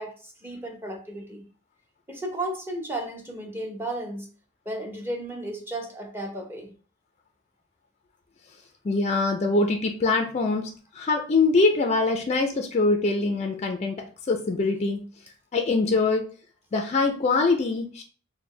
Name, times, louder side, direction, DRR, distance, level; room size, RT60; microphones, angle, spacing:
voice 1, 0.0-1.4 2.1-4.3 4.7-6.7, right 1 dB, 10° right, 1 dB, 0.7 m, -34 dB
voice 2, 8.8-15.0 15.5-16.3 16.7-18.0, left 3 dB, 35° left, 4 dB, 0.4 m, -23 dB
4.2 x 2.1 x 3.1 m, 0.38 s
head